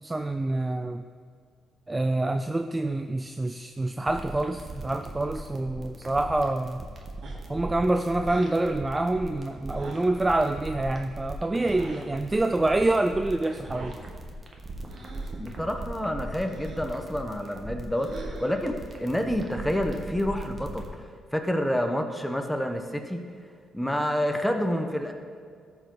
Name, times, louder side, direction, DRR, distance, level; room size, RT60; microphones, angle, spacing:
voice 1, 0.0-1.0 1.9-6.8 7.5-14.0, right 2 dB, 15° right, 8 dB, 0.3 m, -26 dB
sound 1, 4.1-20.9, right 2 dB, 35° right, 1.2 m, -39 dB
sound 2, 7.2-7.6 8.2-8.6 9.7-10.1 11.6-12.0 13.5-14.0 14.8-15.4 16.4-16.9 17.9-18.6, right 2 dB, 60° right, 1.5 m, -44 dB
voice 2, 15.4-23.2 23.7-25.1, equal, 5° left, 4 dB, 0.9 m, -28 dB
14.0 x 4.7 x 3.9 m, 2.2 s
cardioid pair, 90°, 0 cm